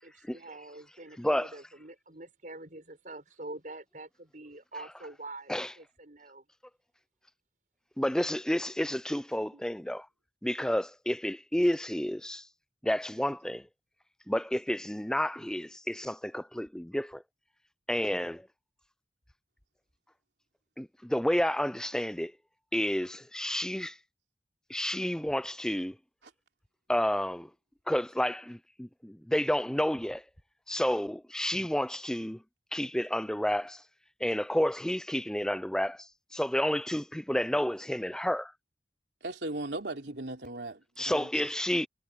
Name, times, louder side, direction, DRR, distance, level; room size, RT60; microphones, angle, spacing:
voice 1, 0.0-6.5, right 2 dB, 45° right, 5.6 m, -46 dB
voice 2, 1.2-1.5 5.5-5.7 8.0-10.1 10.4-12.5 12.8-13.7 14.3-17.2 17.9-18.5 20.8-22.3 22.7-24.0 24.7-26.0 26.9-27.5 27.9-30.2 30.7-32.4 32.7-33.8 34.2-38.5 41.0-41.9, left 1 dB, 5° left, 0.4 m, -30 dB
voice 3, 39.2-41.5, right 2 dB, 75° right, 3.2 m, -38 dB
head